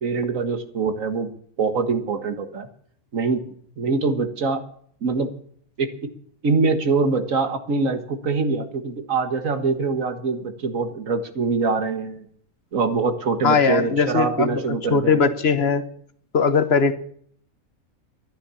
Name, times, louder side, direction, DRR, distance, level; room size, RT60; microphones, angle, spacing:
voice 1, 0.0-1.3 1.6-2.7 3.1-3.4 3.8-4.6 5.0-5.3 5.8-6.1 6.4-12.3 12.7-15.2, right 4 dB, 65° right, 9 dB, 1.9 m, -24 dB
voice 2, 13.4-15.8 16.3-16.9, left 5 dB, 50° left, 12 dB, 1.2 m, -20 dB
13.0 x 11.5 x 7.1 m, 0.62 s
omnidirectional pair, 1.5 m